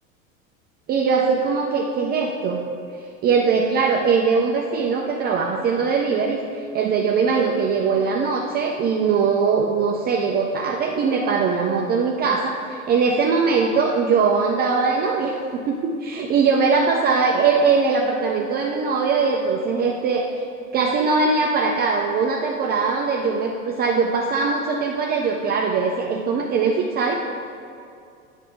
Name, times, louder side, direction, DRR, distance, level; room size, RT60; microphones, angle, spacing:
voice 1, 0.9-2.6 3.2-20.3 20.7-27.1, right 5 dB, 25° right, 0 dB, 0.5 m, -21 dB
9.2 x 4.4 x 4.9 m, 2.5 s
figure-of-eight pair, 80°, 41 cm